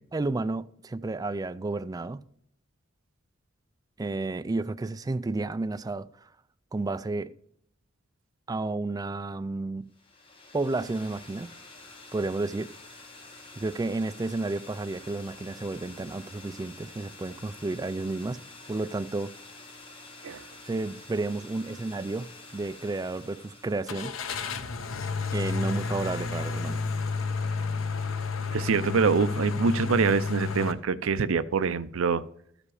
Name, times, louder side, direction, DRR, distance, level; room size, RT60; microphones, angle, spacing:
voice 1, 0.1-2.2 4.0-6.1 6.7-7.3 8.5-9.9 10.5-11.5 12.1-12.7 13.6-18.4 18.7-19.3 20.7-24.1 25.3-26.8, right 2 dB, 20° right, 0.3 m, -31 dB
sound 1, 9.9-24.4, left 3 dB, 25° left, 1.7 m, -48 dB
Car / Engine starting, 23.9-30.7, left 4 dB, 80° left, 0.9 m, -31 dB
voice 2, 28.5-32.2, right 5 dB, 85° right, 0.5 m, -25 dB
13.5 x 5.1 x 4.8 m
head